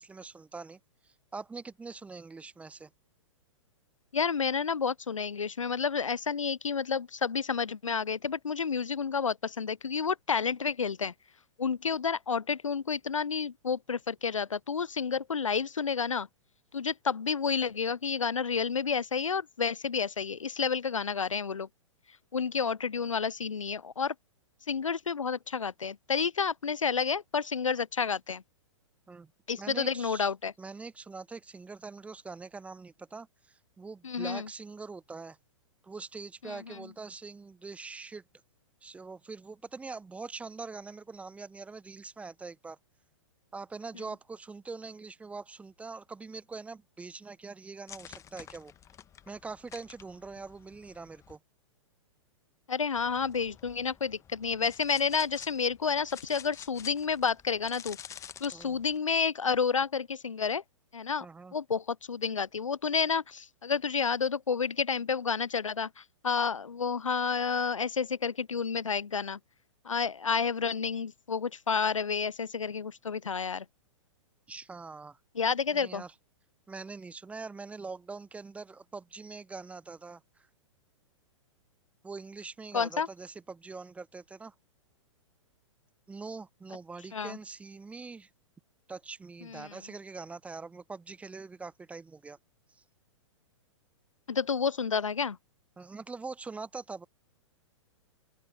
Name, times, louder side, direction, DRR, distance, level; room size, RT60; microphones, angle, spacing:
voice 1, 0.0-2.9 29.1-29.3 29.6-30.3 30.6-35.4 35.8-38.2 38.8-42.8 43.5-48.7 49.3-51.4 58.5-58.8 61.2-61.5 70.3-70.5 74.5-75.2 75.7-76.1 76.7-80.5 82.0-84.5 86.1-88.3 88.9-92.4 92.7-92.8 95.8-97.1, right 4 dB, 10° right, 0.6 m, -43 dB
voice 2, 4.1-11.1 11.6-16.3 16.7-21.7 22.3-24.1 24.7-28.4 29.5-30.5 34.0-34.5 36.4-36.8 52.7-58.0 58.4-60.6 60.9-61.3 61.5-69.4 69.8-73.7 75.4-76.0 82.7-83.1 87.1-87.4 89.5-89.7 94.3-95.4, left 6 dB, 85° left, 0.5 m, -30 dB
sound 1, 47.9-51.4 53.0-59.0, left 9 dB, 20° left, 1.1 m, -50 dB
open air
figure-of-eight pair, 110°, 16 cm